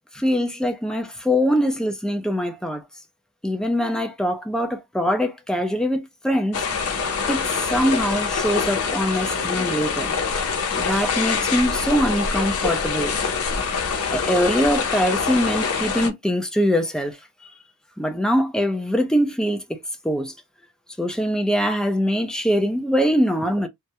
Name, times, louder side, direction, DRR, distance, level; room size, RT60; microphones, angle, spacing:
voice 1, 0.1-2.8 3.4-6.6 7.3-10.2 10.8-13.1 14.1-17.2 18.0-19.8 20.0-20.3 21.0-23.7, equal, 5° left, 0.4 m, -23 dB
sound 1, 6.5-16.1, left 5 dB, 75° left, 0.6 m, -25 dB
2.3 x 2.1 x 2.8 m
head